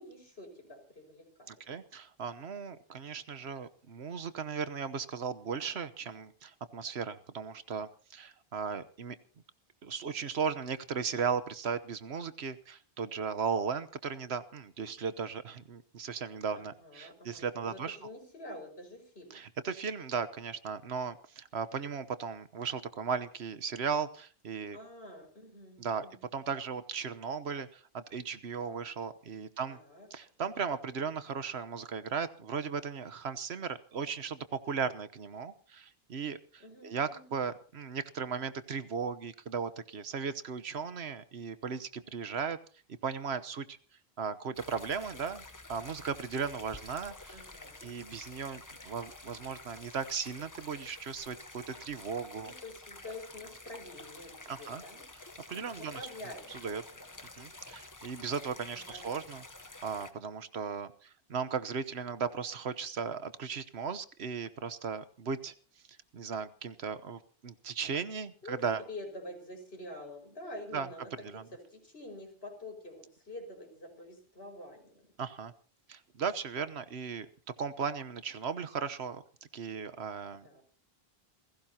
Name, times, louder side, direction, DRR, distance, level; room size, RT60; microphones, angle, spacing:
voice 1, 0.0-1.6 16.5-19.4 24.7-26.2 29.7-30.1 36.6-37.3 47.3-48.0 52.4-54.3 54.6-55.0 55.8-57.0 58.7-59.2 68.4-68.6 68.9-75.1 80.4-80.6, left 1 dB, 75° left, 3 dB, 5.7 m, -47 dB
voice 2, 1.5-9.2 9.8-18.0 19.3-24.8 25.8-26.1 26.3-29.8 30.1-42.6 43.0-43.8 44.2-45.4 45.7-47.4 47.8-52.5 54.5-54.8 55.5-56.0 56.5-56.8 57.4-65.5 66.1-68.8 70.7-70.9 71.2-71.4 75.2-75.5 75.9-77.3 77.6-79.2 79.5-80.5, right 6 dB, 90° right, 13 dB, 1.3 m, -36 dB
sound 1, 44.5-60.1, left 2 dB, 20° left, 0.9 m, -50 dB
28.0 x 16.5 x 2.9 m, 0.39 s
omnidirectional pair, 1.1 m